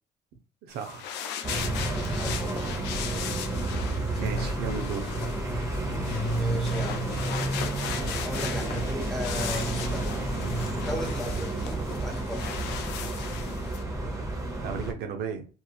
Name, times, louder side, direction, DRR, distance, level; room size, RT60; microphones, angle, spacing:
voice 1, 0.6-1.1 4.1-5.1 14.6-15.5, right 6 dB, 75° right, 5 dB, 0.6 m, -34 dB
sound 1, 0.7-13.8, left 8 dB, 90° left, 0.4 m, -38 dB
sound 2, 1.4-14.9, right 2 dB, 20° right, 0.8 m, -30 dB
voice 2, 2.2-2.6 5.9-7.1 8.2-10.1 10.8-12.5, left 1 dB, ahead, -2 dB, 1.0 m, -37 dB
2.9 x 2.5 x 2.3 m, 0.35 s
cardioid pair, 110°, 17 cm